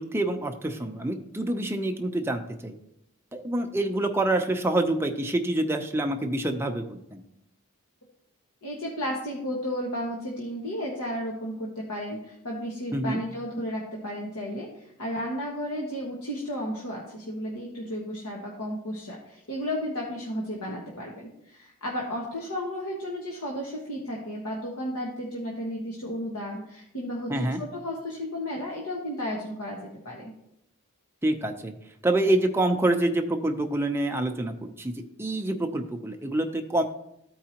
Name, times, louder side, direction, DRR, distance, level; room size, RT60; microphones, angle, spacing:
voice 1, 0.0-2.7 3.3-7.2 12.9-13.2 27.3-27.6 31.2-31.7 32.0-34.9 35.2-36.8, right 1 dB, 10° right, 3 dB, 0.6 m, -26 dB
voice 2, 8.6-29.8 30.0-30.3, equal, 85° left, -3 dB, 1.4 m, -33 dB
14.0 x 4.7 x 2.9 m, 0.79 s
head